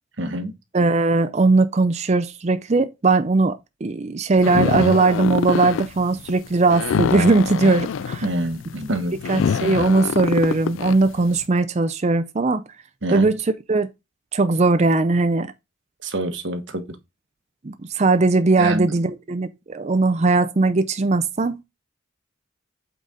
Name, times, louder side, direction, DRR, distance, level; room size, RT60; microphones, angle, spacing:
voice 1, 0.2-0.5 8.2-9.2 13.0-13.3 16.0-16.8 18.6-18.9, right 1 dB, 65° right, 1.3 m, -26 dB
voice 2, 0.7-8.2 9.3-12.6 13.1-13.4 13.7-13.9 14.3-15.5 17.6-21.6, right 3 dB, 35° right, 0.5 m, -19 dB
sound 1, 4.4-11.3, left 6 dB, 70° left, 0.3 m, -25 dB
8.1 x 4.1 x 3.7 m
head